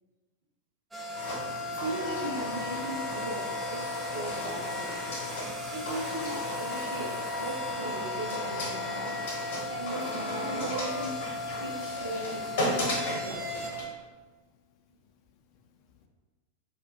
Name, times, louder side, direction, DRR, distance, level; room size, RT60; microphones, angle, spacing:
sound 1, 0.9-13.7, left 2 dB, 10° right, 0.6 m, -37 dB
sound 2, 1.1-13.9, left 1 dB, 55° left, 0.9 m, -35 dB
voice 1, 1.8-5.1 5.7-9.2 9.7-11.2 11.6-13.7, right 1 dB, 55° right, -1 dB, 0.6 m, -38 dB
voice 2, 14.1-16.1, left 7 dB, 40° left, 4 dB, 0.3 m, -66 dB
2.3 x 2.2 x 3.8 m, 1.3 s
figure-of-eight pair, 90°, 0 cm